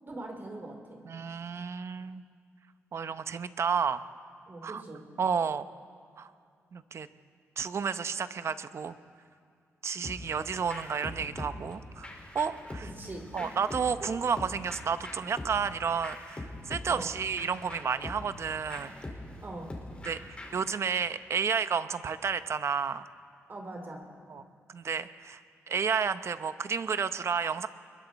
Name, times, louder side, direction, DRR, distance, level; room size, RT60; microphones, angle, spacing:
voice 1, 0.0-1.0 4.5-5.0 12.8-13.5 14.0-14.1 16.9-17.1 19.4-19.7 23.5-24.0, right 2 dB, 45° right, 2 dB, 3.4 m, -42 dB
voice 2, 1.1-2.2 2.9-4.0 4.6-4.8 5.2-5.7 6.2-6.3 6.7-7.1 7.6-8.9 9.8-12.1 12.3-12.9 13.3-18.9 20.0-23.0 24.3-24.4 24.7-25.4 25.7-27.7, right 6 dB, 60° right, 12 dB, 0.9 m, -31 dB
sound 1, 10.0-20.7, left 1 dB, 25° left, 4.7 m, -43 dB
27.5 x 22.0 x 4.2 m, 2.3 s
cardioid pair, 75°, 5 cm